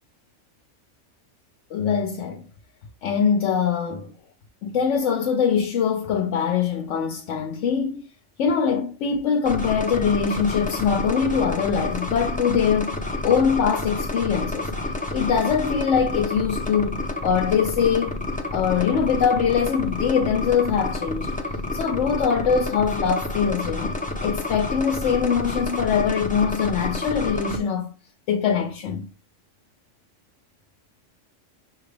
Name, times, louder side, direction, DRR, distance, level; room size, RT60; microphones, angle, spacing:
voice 1, 1.7-2.4 3.0-4.1 4.6-8.1 8.4-13.0 13.2-14.7 15.1-18.2 18.5-21.3 21.7-27.9 28.3-29.0, left 7 dB, 80° left, 0.9 m, -23 dB
sound 1, 9.5-27.6, left 2 dB, 15° left, 0.3 m, -29 dB
6.0 x 2.4 x 3.2 m
omnidirectional pair, 1.3 m